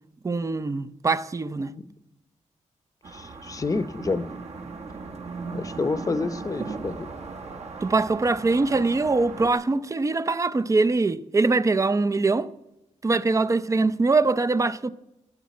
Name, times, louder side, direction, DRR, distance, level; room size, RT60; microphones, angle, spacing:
voice 1, 0.2-1.7 7.8-12.5 13.0-14.9, right 3 dB, 25° right, 0.5 m, -23 dB
sound 1, 3.0-9.5, right 4 dB, 60° right, 1.5 m, -37 dB
voice 2, 3.1-4.3 4.6-4.7 5.5-7.1, left 3 dB, 25° left, 0.8 m, -29 dB
16.5 x 8.5 x 8.3 m
wide cardioid pair, 155°, 13 cm